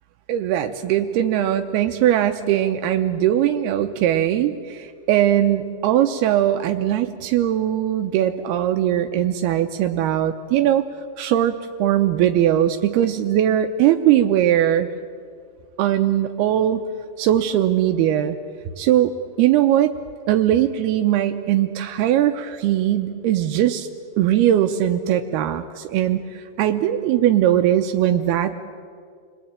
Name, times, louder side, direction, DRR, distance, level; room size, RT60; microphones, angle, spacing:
voice 1, 0.3-10.8 11.2-14.9 15.8-16.9 17.2-18.4 18.8-19.1 19.4-19.9 20.3-23.9 24.2-28.6, right 11 dB, 80° right, 6 dB, 2.8 m, -20 dB
29.5 x 21.5 x 8.9 m, 2.2 s
omnidirectional pair, 4.6 m